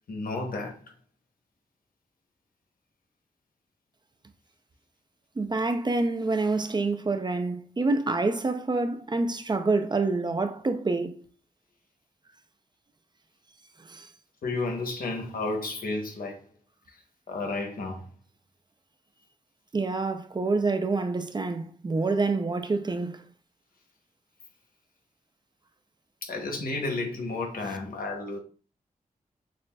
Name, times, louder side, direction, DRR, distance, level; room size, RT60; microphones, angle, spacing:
voice 1, 0.1-0.8 14.4-16.5 17.3-18.1 26.2-28.4, left 3 dB, 90° left, 0.9 m, -32 dB
voice 2, 5.4-11.2 13.9-14.0 19.7-23.2, right 3 dB, 30° right, 0.4 m, -27 dB
6.5 x 2.4 x 2.3 m
wide cardioid pair, 80°, 15 cm